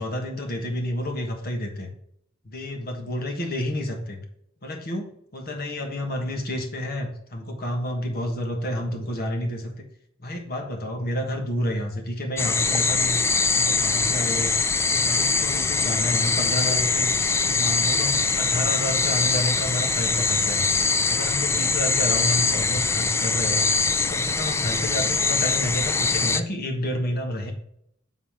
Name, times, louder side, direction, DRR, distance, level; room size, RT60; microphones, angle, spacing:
voice 1, 0.0-1.9 2.4-4.2 4.6-9.8 10.2-13.2 13.5-14.5 14.8-20.6 21.1-23.7 24.0-27.5, left 1 dB, 50° left, 3 dB, 1.3 m, -30 dB
sound 1, 12.4-26.4, left 4 dB, 15° left, 0.3 m, -23 dB
7.5 x 4.0 x 5.0 m, 0.73 s
head